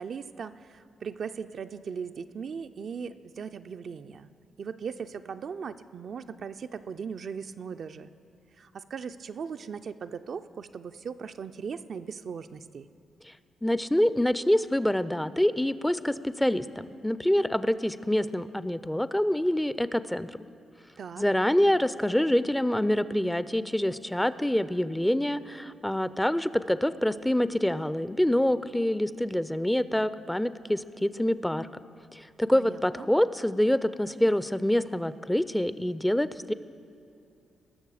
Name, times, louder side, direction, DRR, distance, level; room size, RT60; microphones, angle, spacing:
voice 1, 0.0-4.3 4.6-8.1 8.6-12.9 21.0-21.2 32.5-33.1, right 6 dB, 60° right, 9 dB, 0.4 m, -38 dB
voice 2, 13.6-16.6 17.0-20.3 21.2-31.7 32.1-36.5, left 1 dB, 10° left, 15 dB, 0.4 m, -26 dB
19.0 x 6.5 x 4.8 m, 2.6 s
supercardioid pair, 50°, 0 cm